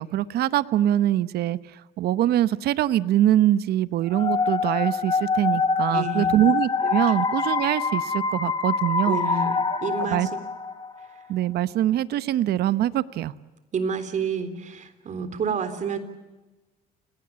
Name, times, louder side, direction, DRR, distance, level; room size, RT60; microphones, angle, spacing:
voice 1, 0.0-9.2 10.0-10.3 11.3-13.3, right 12 dB, 70° right, 15 dB, 1.0 m, -23 dB
sound 1, 4.1-10.9, left 4 dB, 25° left, 2.3 m, -25 dB
voice 2, 5.9-6.4 9.0-10.4 13.7-16.0, right 5 dB, 45° right, 10 dB, 3.7 m, -29 dB
29.0 x 19.0 x 8.7 m, 1.2 s
cardioid pair, 110°, 17 cm